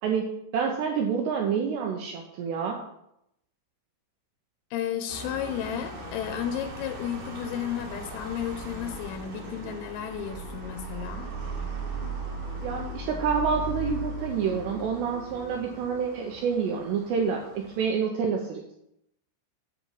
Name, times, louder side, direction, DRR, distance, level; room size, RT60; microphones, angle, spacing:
voice 1, 0.0-2.8 12.6-18.7, right 6 dB, 80° right, 1 dB, 2.6 m, -28 dB
voice 2, 4.7-11.3, left 9 dB, 90° left, 5 dB, 3.5 m, -33 dB
sound 1, 5.1-17.9, right 2 dB, 50° right, 3.5 m, -38 dB
10.0 x 4.3 x 7.5 m, 0.80 s
omnidirectional pair, 5.8 m